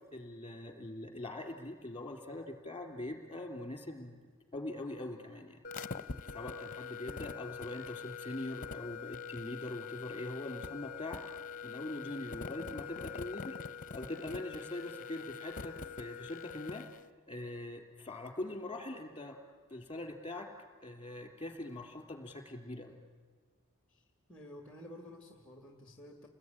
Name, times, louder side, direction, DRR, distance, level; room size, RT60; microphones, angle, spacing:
voice 1, 0.1-4.2 4.5-5.6 6.3-11.2 11.6-16.9 17.3-19.4 19.7-20.5 20.8-23.0, left 1 dB, 20° left, 4 dB, 3.5 m, -42 dB
sound 1, 5.6-17.0, left 5 dB, 40° left, 0.9 m, -44 dB
voice 2, 23.9-26.3, left 1 dB, 5° left, 5 dB, 1.9 m, -52 dB
29.5 x 20.0 x 10.0 m, 1.5 s
head